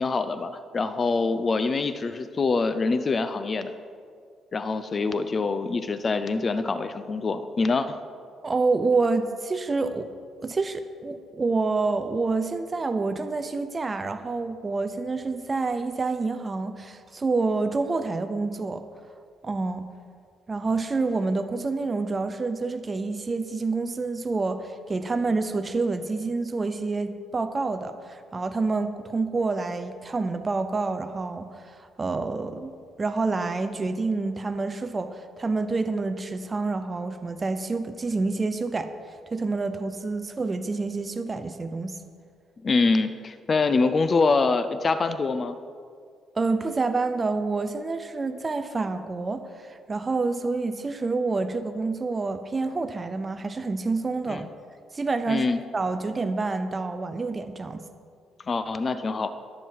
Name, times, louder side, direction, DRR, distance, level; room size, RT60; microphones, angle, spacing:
voice 1, 0.0-3.7 4.5-8.0 42.6-45.5 54.3-54.5 55.3-55.6 58.5-59.3, left 4 dB, 30° left, 11 dB, 0.5 m, -25 dB
voice 2, 8.4-10.1 10.4-18.8 19.4-19.9 20.5-32.7 33.0-38.9 39.3-42.0 46.3-54.5 54.9-55.5 55.7-57.8, right 3 dB, 25° right, 8 dB, 0.6 m, -28 dB
22.5 x 7.4 x 4.7 m, 2.1 s
cardioid pair, 135°, 0 cm